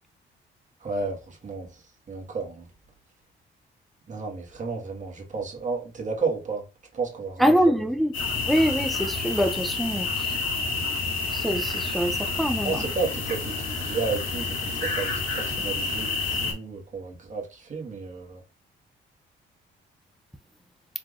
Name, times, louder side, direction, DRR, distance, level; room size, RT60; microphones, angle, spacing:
voice 1, 0.8-1.7 2.1-2.6 4.1-6.6 6.9-7.6 12.6-18.4, right 4 dB, 40° right, 1.6 m, -32 dB
voice 2, 7.4-8.1 8.5-10.1 11.3-12.8, equal, ahead, 0.6 m, -24 dB
sound 1, 8.1-16.5, left 3 dB, 80° left, 2.1 m, -29 dB
4.8 x 3.4 x 2.5 m
cardioid pair, 90°, 20 cm